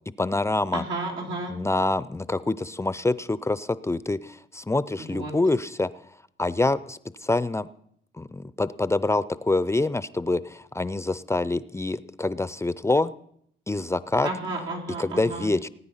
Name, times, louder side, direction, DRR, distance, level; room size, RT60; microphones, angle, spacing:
voice 1, 0.2-0.8 1.5-5.9 6.4-7.7 8.2-13.1 13.7-14.3 15.0-15.7, left 2 dB, 15° left, 16 dB, 0.5 m, -26 dB
voice 2, 0.7-1.6 5.0-5.3 14.2-15.5, right 2 dB, 90° right, -1 dB, 3.4 m, -32 dB
19.0 x 9.5 x 5.6 m, 0.69 s
cardioid pair, 90°, 20 cm